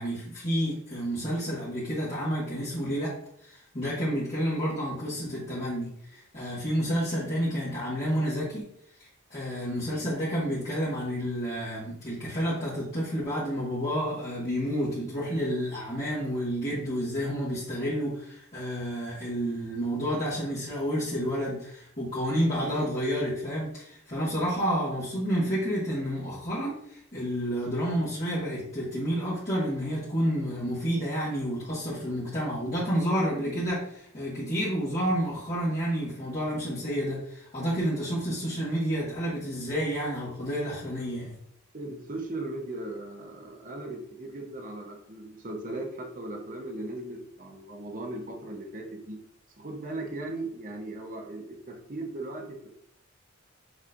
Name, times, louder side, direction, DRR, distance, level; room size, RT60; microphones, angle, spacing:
voice 1, 0.0-3.1 3.4-8.7 9.0-41.3, equal, 35° left, -10 dB, 1.5 m, -30 dB
voice 2, 41.7-49.2 49.6-52.7, right 2 dB, 40° right, 2 dB, 0.9 m, -38 dB
6.4 x 3.1 x 2.6 m, 0.68 s
head